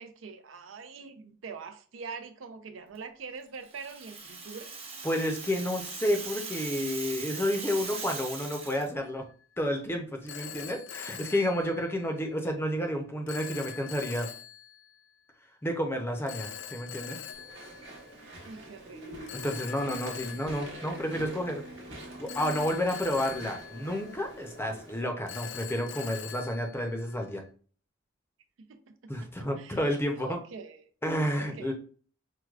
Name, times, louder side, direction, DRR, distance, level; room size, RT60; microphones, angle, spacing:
voice 1, 0.0-4.7 18.4-19.0 28.7-28.9 29.4-30.9 31.4-31.7, right 5 dB, 85° right, 8 dB, 0.5 m, -44 dB
Rattle (instrument), 3.6-8.9, right 4 dB, 30° right, 0.9 m, -40 dB
voice 2, 5.0-9.2 9.6-14.3 15.6-17.2 19.3-21.6 22.2-27.4 29.1-30.4 31.0-31.7, equal, 10° left, 3 dB, 0.5 m, -30 dB
Telephone, 9.0-9.3 10.3-12.3 13.3-15.0 16.3-18.4 19.3-21.6 22.3-24.6 25.3-27.5, left 9 dB, 65° left, 0.3 m, -44 dB
Walk footsteps / Chatter / Squeak, 17.3-25.0, right 1 dB, 70° right, 1.0 m, -45 dB
4.5 x 2.2 x 2.3 m, 0.42 s
head